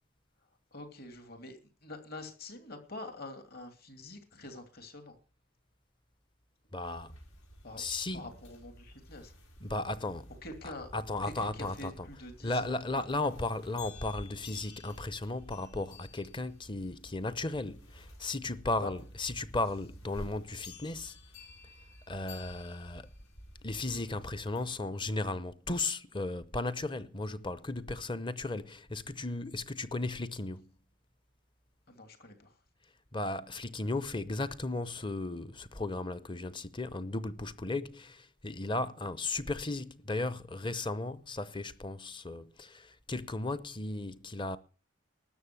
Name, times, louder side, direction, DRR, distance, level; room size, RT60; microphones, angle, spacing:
voice 1, 0.7-5.2 7.6-7.8 8.1-9.3 10.4-10.9 11.2-13.0 18.8-18.9 31.9-32.5, left 2 dB, 45° left, 2.7 m, -46 dB
voice 2, 6.7-7.1 7.8-8.3 9.6-10.3 10.6-12.1 12.4-21.2 22.1-23.1 23.6-30.7 33.1-44.6, left 2 dB, 25° left, 0.7 m, -35 dB
sound 1, 6.8-24.7, left 1 dB, 90° left, 5.0 m, -51 dB
12.5 x 6.9 x 9.7 m
head